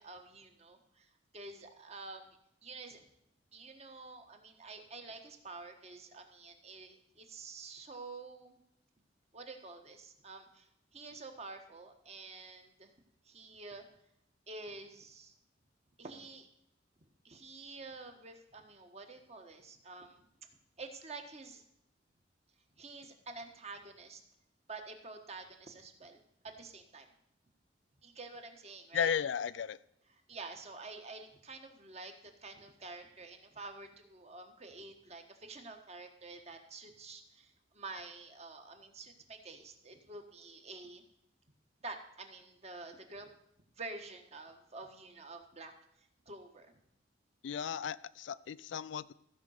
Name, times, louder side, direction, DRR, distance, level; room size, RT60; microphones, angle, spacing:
voice 1, 0.0-2.4 2.6-3.0 3.5-8.6 9.3-12.9 13.2-13.9 14.5-15.3 16.0-16.5 17.2-20.3 20.8-21.6 22.8-24.2 24.7-26.2 26.6-27.1 28.0-29.1 30.1-41.0 41.8-43.3 43.8-45.7 46.0-46.8, right 3 dB, 35° right, 5 dB, 1.3 m, -49 dB
voice 2, 28.9-29.8 47.4-49.1, left 7 dB, 70° left, 17 dB, 0.4 m, -35 dB
14.5 x 5.2 x 6.5 m, 0.74 s
head